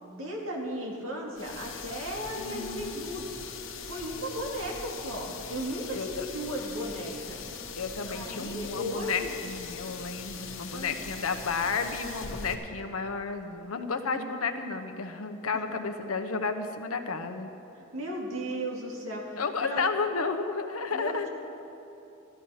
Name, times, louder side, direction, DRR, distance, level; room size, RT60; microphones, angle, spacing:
voice 1, 0.0-3.4 3.9-7.4 8.1-9.4 10.7-10.9 15.5-15.6 17.7-19.8 20.9-21.3, equal, 70° right, -2 dB, 2.3 m, -36 dB
sound 1, 1.4-12.5, left 5 dB, 65° left, 1.2 m, -41 dB
voice 2, 2.3-3.0 5.9-6.3 7.8-17.5 19.4-21.3, left 4 dB, 85° left, 7 dB, 0.9 m, -32 dB
13.5 x 12.5 x 5.7 m, 2.9 s
head